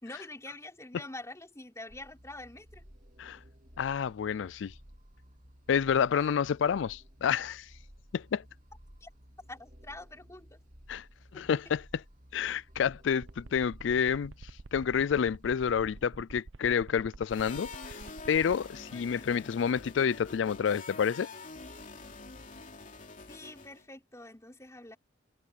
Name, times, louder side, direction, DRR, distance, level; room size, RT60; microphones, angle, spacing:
voice 1, 0.0-2.8 6.1-6.4 9.0-9.1 9.5-10.6 11.3-11.7 18.9-19.3 23.3-25.0, left 2 dB, 15° left, 3.7 m, -46 dB
sound 1, 1.9-16.1, equal, 45° right, 3.7 m, -55 dB
voice 2, 3.8-4.7 5.7-7.7 8.1-8.4 10.9-11.0 11.3-12.0 12.3-14.3 14.7-17.7 18.3-21.3, left 7 dB, 75° left, 0.4 m, -29 dB
sound 2, 13.2-18.6, right 3 dB, 75° right, 0.7 m, -47 dB
sound 3, 17.3-23.8, left 4 dB, 45° left, 3.0 m, -46 dB
head